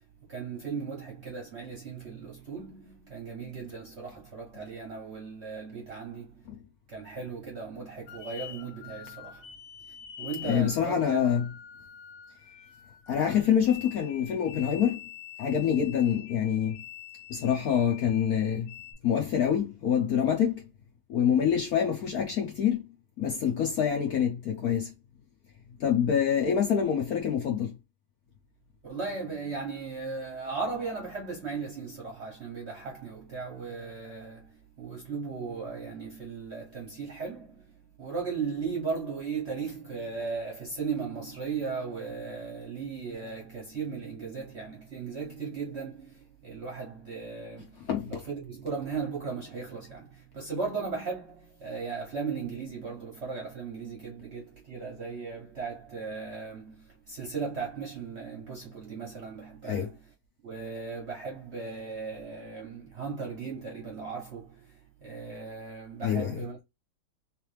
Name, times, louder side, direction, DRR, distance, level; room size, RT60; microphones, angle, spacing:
voice 1, 0.3-6.5 6.9-9.5 10.2-11.3 28.8-59.9 60.4-66.6, right 5 dB, 45° right, 0.9 m, -37 dB
sound 1, 8.1-18.9, left 10 dB, 85° left, 1.6 m, -46 dB
voice 2, 10.4-11.5 13.1-15.0 15.4-16.8 17.3-18.7 19.0-20.6 21.1-22.8 23.2-24.9 25.8-27.7 47.9-48.2 59.7-59.9 66.0-66.4, left 8 dB, 60° left, 1.0 m, -26 dB
3.3 x 3.2 x 3.2 m
omnidirectional pair, 2.2 m